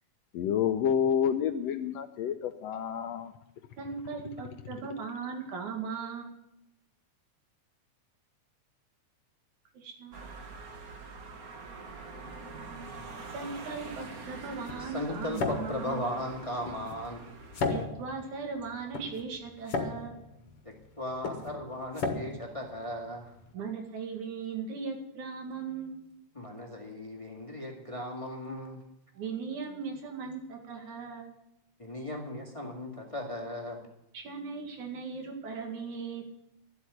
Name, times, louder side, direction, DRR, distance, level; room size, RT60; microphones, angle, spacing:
voice 1, 0.3-3.3, left 8 dB, 75° left, 9 dB, 1.6 m, -29 dB
voice 2, 3.8-6.3 9.7-10.2 13.3-16.0 17.7-20.1 23.5-26.0 29.2-31.3 34.1-36.2, right 5 dB, 75° right, 3 dB, 3.6 m, -38 dB
sound 1, 10.1-17.9, right 3 dB, 45° right, 1.2 m, -45 dB
sound 2, 13.7-23.5, left 3 dB, 55° left, 2.1 m, -37 dB
voice 3, 14.8-17.2 21.0-23.3 26.3-28.8 31.8-33.9, left 1 dB, 15° left, 1 dB, 1.8 m, -37 dB
12.5 x 8.1 x 9.7 m, 0.83 s
omnidirectional pair, 3.4 m